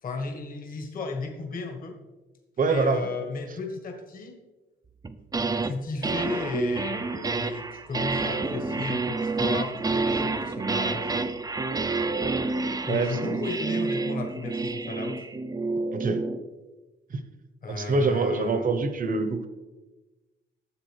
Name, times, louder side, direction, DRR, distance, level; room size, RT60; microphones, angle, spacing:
voice 1, 0.0-2.0 2.7-4.4 5.6-11.3 12.9-15.2 17.6-18.7, left 3 dB, 45° left, 3 dB, 1.3 m, -34 dB
voice 2, 2.6-3.1 12.9-13.4 15.9-16.2 17.1-17.2 17.7-19.5, right 3 dB, 45° right, 10 dB, 1.0 m, -25 dB
sound 1, 5.0-5.7 6.0-16.4, right 3 dB, 20° right, 0.5 m, -29 dB
10.5 x 7.2 x 3.3 m, 1.2 s
cardioid pair, 90°, 20 cm